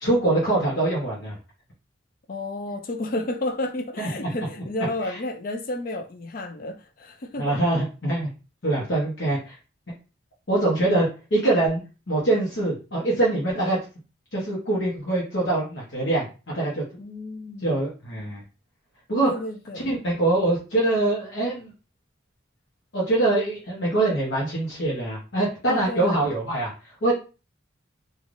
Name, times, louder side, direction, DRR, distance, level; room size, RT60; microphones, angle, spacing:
voice 1, 0.0-1.4 4.0-4.5 5.0-5.2 7.4-8.3 8.6-9.5 10.5-11.8 12.1-13.8 14.3-16.8 17.6-18.4 19.1-19.3 19.8-21.7 22.9-27.1, right 2 dB, 75° left, 0.9 m, -24 dB
voice 2, 2.3-7.6 17.0-17.7 19.2-19.9 25.7-26.2, left 1 dB, 45° left, 0.4 m, -31 dB
3.2 x 2.4 x 2.5 m
head